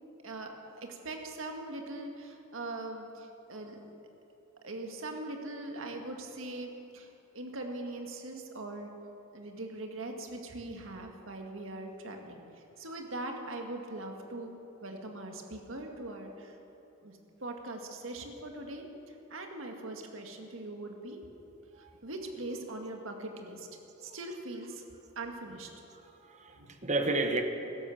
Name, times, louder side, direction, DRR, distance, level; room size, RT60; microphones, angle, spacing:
voice 1, 0.2-3.8 4.6-8.9 9.3-14.5 14.8-16.6 17.0-21.2 22.0-23.7 24.0-24.8 25.2-25.7 26.5-26.7, right 2 dB, 70° right, 3 dB, 1.9 m, -41 dB
voice 2, 26.0-27.4, right 2 dB, 35° right, 5 dB, 1.3 m, -32 dB
16.0 x 12.0 x 7.2 m, 2.9 s
head